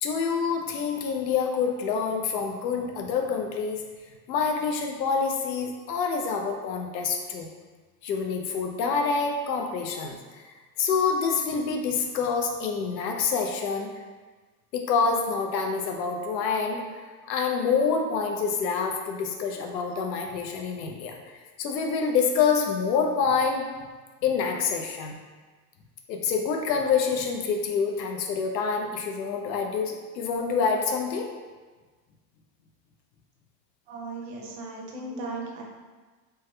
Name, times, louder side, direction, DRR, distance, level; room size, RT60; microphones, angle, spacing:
voice 1, 0.0-3.8 4.3-7.5 8.0-10.4 10.8-13.9 14.7-16.8 17.2-21.2 21.6-23.7 24.2-25.2 26.1-31.3 34.4-34.5 35.1-35.3, left 5 dB, 85° left, 2 dB, 0.7 m, -27 dB
voice 2, 33.9-35.6, right 3 dB, 40° right, -2 dB, 0.6 m, -36 dB
3.4 x 2.2 x 3.2 m, 1.3 s
supercardioid pair, 165°, 50 cm